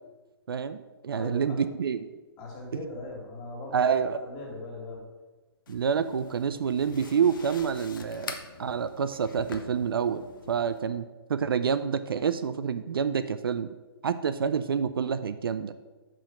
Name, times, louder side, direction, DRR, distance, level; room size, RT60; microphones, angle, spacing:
voice 1, 0.5-2.1 3.7-4.2 5.7-13.7 14.0-15.7, right 7 dB, 60° right, 12 dB, 0.4 m, -28 dB
voice 2, 1.1-1.6 2.4-3.9 4.2-5.1, left 2 dB, 25° left, -1 dB, 2.3 m, -40 dB
sound 1, 5.7-10.8, left 6 dB, 55° left, 0.8 m, -45 dB
5.7 x 5.0 x 6.1 m, 1.2 s
figure-of-eight pair, 125°, 13 cm